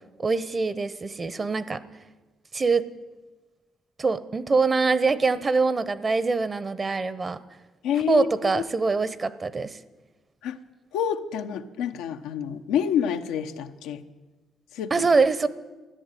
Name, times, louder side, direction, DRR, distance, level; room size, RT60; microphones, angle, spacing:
voice 1, 0.2-1.8 2.5-2.9 4.0-7.4 8.1-9.8 14.9-15.5, right 4 dB, 35° right, 16 dB, 0.9 m, -24 dB
voice 2, 7.8-8.3 8.5-8.6 10.4-10.6 10.9-14.0 14.7-14.9, left 8 dB, 85° left, 6 dB, 0.8 m, -27 dB
14.0 x 10.5 x 9.2 m, 1.2 s
supercardioid pair, 75°, 0 cm